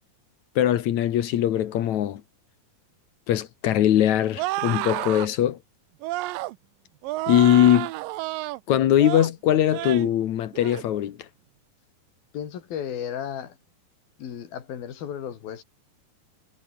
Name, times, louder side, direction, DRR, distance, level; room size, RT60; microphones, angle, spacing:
voice 1, 0.6-2.2 3.3-5.6 7.3-7.9 8.7-11.2, left 11 dB, 65° left, 2.3 m, -21 dB
sound 1, 4.4-5.3 6.0-6.6 7.0-8.6 9.0-9.3 9.7-10.1 10.5-10.8, right 18 dB, 80° right, 2.4 m, -30 dB
voice 2, 12.3-13.6 14.2-15.6, left 9 dB, 85° left, 4.5 m, -34 dB
omnidirectional pair, 4.1 m